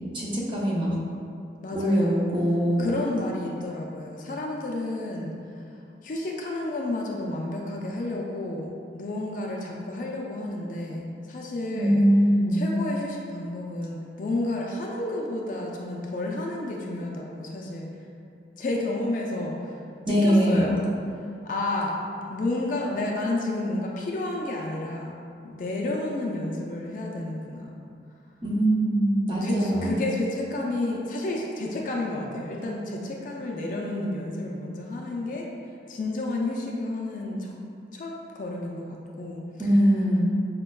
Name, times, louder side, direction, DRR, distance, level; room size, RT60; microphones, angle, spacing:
voice 1, 0.1-0.9 1.7-2.9 11.7-12.6 20.1-20.7 28.4-29.9 39.6-40.2, equal, 25° right, -6 dB, 0.5 m, -22 dB
voice 2, 1.6-2.2 2.8-5.4 6.0-8.7 8.9-12.0 12.5-17.9 18.6-19.7 20.0-20.8 21.4-21.9 22.3-25.1 25.4-27.7 29.4-35.5 35.9-37.5 37.9-39.4, left 2 dB, 45° left, -2 dB, 0.3 m, -31 dB
5.1 x 2.2 x 2.2 m, 2.5 s
head